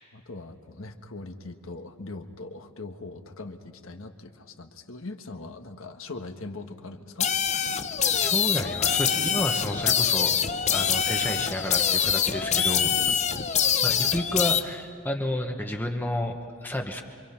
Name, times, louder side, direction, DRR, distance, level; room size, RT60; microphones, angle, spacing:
voice 1, 0.1-7.3 13.0-13.2, left 3 dB, 70° left, 6 dB, 1.4 m, -41 dB
sound 1, 7.2-14.6, left 8 dB, 35° left, 0.7 m, -24 dB
voice 2, 8.1-10.4 10.7-12.9 13.8-17.0, left 1 dB, 10° left, 3 dB, 1.1 m, -31 dB
27.0 x 24.5 x 5.8 m, 2.3 s
head